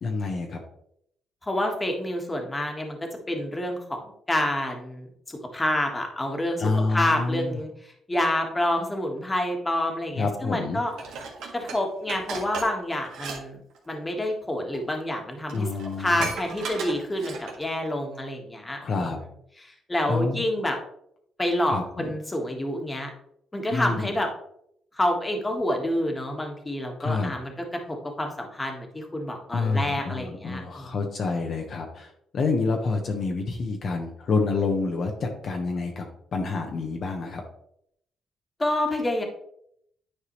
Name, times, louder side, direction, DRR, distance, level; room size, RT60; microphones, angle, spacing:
voice 1, 0.0-0.6 6.6-7.6 10.2-10.8 15.5-16.2 18.8-19.2 20.1-20.4 21.7-22.1 23.7-24.1 27.0-27.3 29.5-36.1 36.3-37.4, left 3 dB, 55° left, 2 dB, 1.1 m, -28 dB
voice 2, 1.4-6.6 6.9-10.9 11.5-13.6 13.9-15.7 16.0-18.8 19.6-20.8 21.4-23.1 23.5-24.3 24.9-30.9 38.6-39.2, left 1 dB, 15° left, 2 dB, 1.7 m, -28 dB
Dishes pots and pans, 11.0-13.4 13.7-13.9 14.7-14.8 15.2-15.3 15.5-17.7 18.2-18.3, right 4 dB, 80° right, 1.7 m, -36 dB
9.9 x 4.7 x 3.2 m, 0.72 s
cardioid pair, 90°, 0 cm